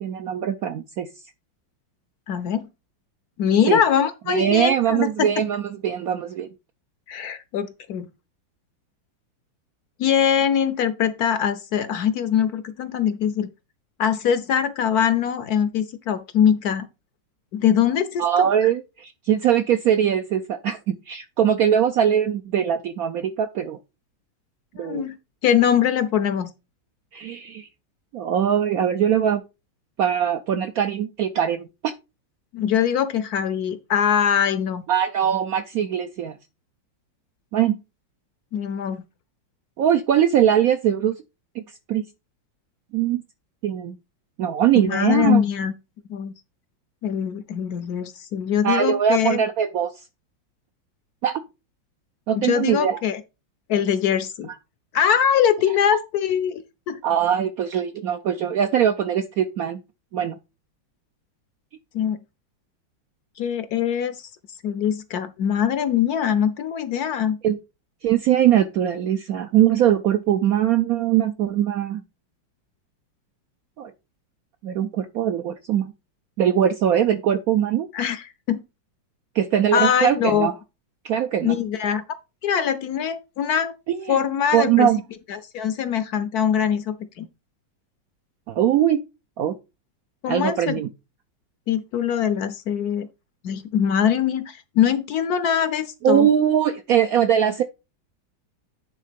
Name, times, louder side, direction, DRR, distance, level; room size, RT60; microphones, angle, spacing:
voice 1, 0.0-1.1 3.7-3.8 4.3-6.5 18.2-23.8 24.8-25.1 27.1-27.7 28.1-29.4 30.0-31.9 34.9-36.4 37.5-37.8 39.8-41.2 41.6-41.7 41.9-42.0 42.9-43.2 43.6-44.0 44.4-45.4 48.6-50.0 51.2-51.4 52.3-53.0 57.0-59.8 60.1-60.4 67.4-67.6 68.0-72.0 73.8-73.9 74.6-75.9 76.4-77.9 79.3-80.5 81.0-81.5 83.9-84.2 84.5-85.0 88.5-89.0 89.4-89.6 90.3-90.9 96.0-97.6, right 9 dB, 75° right, 0.8 m, -21 dB
voice 2, 2.3-2.7 3.4-5.3 7.1-8.1 10.0-13.5 14.0-16.9 17.5-18.7 24.8-25.2 25.4-26.5 32.5-34.8 38.5-39.0 44.7-45.7 46.1-46.3 47.0-49.4 52.3-53.2 53.7-54.5 54.9-57.0 61.9-62.2 63.4-64.3 64.6-67.4 77.9-78.6 79.7-80.5 81.4-82.0 82.4-83.7 84.1-84.9 85.3-87.3 90.2-90.8 91.7-93.1 93.4-96.3, left 8 dB, 65° left, 1.0 m, -22 dB
9.4 x 3.7 x 5.1 m
omnidirectional pair, 2.1 m